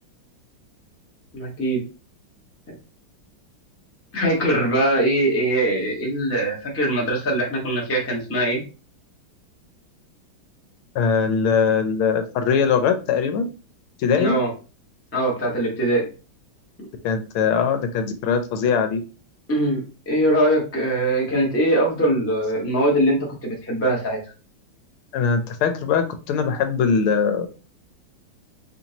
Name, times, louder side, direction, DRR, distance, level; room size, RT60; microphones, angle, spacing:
voice 1, 1.3-1.8 4.1-8.6 14.2-14.5 15.1-16.1 19.5-19.8 20.1-24.2, right 1 dB, 15° left, -2 dB, 0.5 m, -22 dB
voice 2, 10.9-13.5 14.0-14.4 17.0-19.0 25.1-27.5, left 6 dB, 80° left, 8 dB, 1.5 m, -21 dB
4.3 x 2.7 x 2.9 m, 0.34 s
omnidirectional pair, 2.4 m